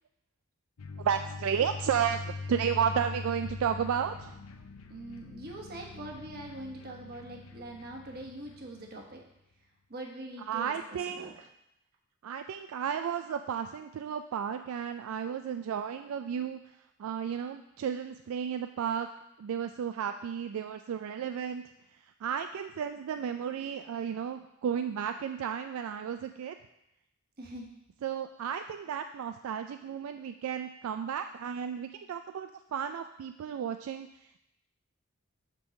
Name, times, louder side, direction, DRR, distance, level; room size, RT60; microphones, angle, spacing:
sound 1, 0.8-9.1, left 3 dB, 80° left, 0.5 m, -42 dB
voice 1, 1.0-4.4 10.5-11.5 12.2-16.6 17.0-19.1 19.4-21.6 22.2-26.6 28.0-34.1, right 8 dB, 75° right, 8 dB, 0.3 m, -33 dB
voice 2, 4.9-9.2 9.9-11.3 27.4-27.7, right 1 dB, 45° right, 0 dB, 1.2 m, -43 dB
5.3 x 4.7 x 6.3 m, 0.84 s
head